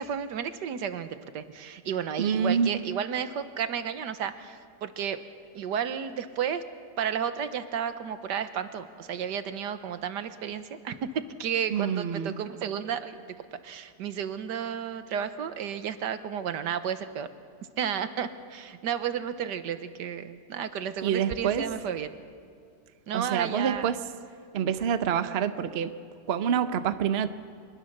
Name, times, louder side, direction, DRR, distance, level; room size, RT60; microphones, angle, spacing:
voice 1, 0.0-5.2 5.6-6.6 7.0-13.2 13.5-17.3 17.8-22.1 23.1-24.0, right 8 dB, 85° right, 11 dB, 1.6 m, -32 dB
voice 2, 2.2-2.8 11.7-12.3 21.0-21.6 23.1-24.0 24.5-25.9 26.3-27.3, right 8 dB, 50° right, 10 dB, 0.9 m, -27 dB
24.5 x 20.5 x 6.6 m, 2.3 s
omnidirectional pair, 1.8 m